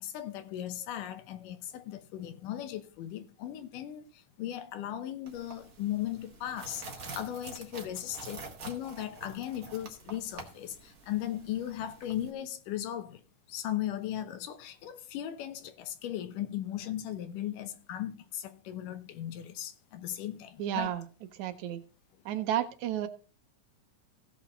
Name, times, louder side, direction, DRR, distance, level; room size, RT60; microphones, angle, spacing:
voice 1, 0.0-13.2 13.5-20.9, left 12 dB, 85° left, 2.5 m, -37 dB
sound 1, 5.3-12.3, right 3 dB, 40° right, 1.3 m, -47 dB
voice 2, 20.6-21.1 21.3-21.8 22.3-23.1, right 11 dB, 75° right, 1.9 m, -32 dB
16.5 x 6.1 x 3.9 m
omnidirectional pair, 3.6 m